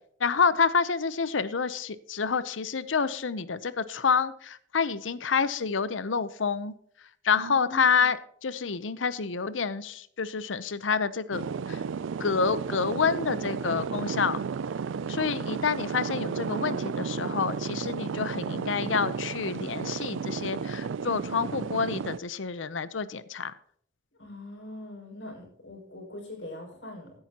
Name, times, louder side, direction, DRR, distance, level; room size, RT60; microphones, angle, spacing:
voice 1, 0.2-6.8 7.2-8.2 8.4-11.8 12.2-14.4 15.1-23.5, left 5 dB, 90° left, 15 dB, 0.8 m, -28 dB
voice 2, 7.3-8.1 24.2-27.1, left 1 dB, 70° left, 0 dB, 5.8 m, -42 dB
sound 1, 11.3-22.2, right 5 dB, 85° right, 0.4 m, -33 dB
16.5 x 10.5 x 2.9 m, 0.64 s
head